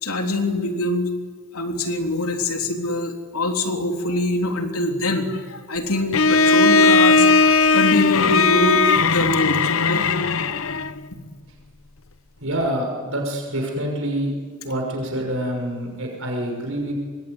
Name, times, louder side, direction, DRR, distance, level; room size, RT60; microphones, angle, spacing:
voice 1, 0.0-1.1 1.5-10.0, left 1 dB, 85° left, 4 dB, 3.5 m, -24 dB
Bowed string instrument, 6.1-11.0, left 4 dB, 70° left, 0.9 m, -17 dB
voice 2, 12.4-14.3 14.6-16.9, right 1 dB, 65° right, 1 dB, 6.2 m, -26 dB
26.0 x 23.0 x 9.7 m, 1.5 s
head